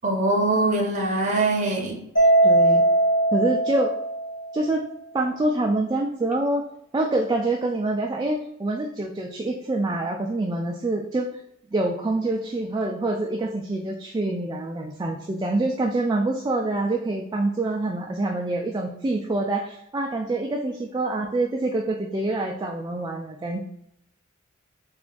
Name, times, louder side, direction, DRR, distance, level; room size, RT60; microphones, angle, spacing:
voice 1, 0.0-2.0, right 2 dB, 35° right, 0 dB, 0.7 m, -22 dB
Mallet percussion, 2.2-4.6, right 2 dB, 60° left, 1.1 m, -20 dB
voice 2, 2.4-2.8 3.3-3.9 4.5-4.8 5.1-6.6 6.9-11.3 11.7-23.6, right 2 dB, 20° right, 0 dB, 0.3 m, -26 dB
3.4 x 2.5 x 3.7 m, 0.75 s
head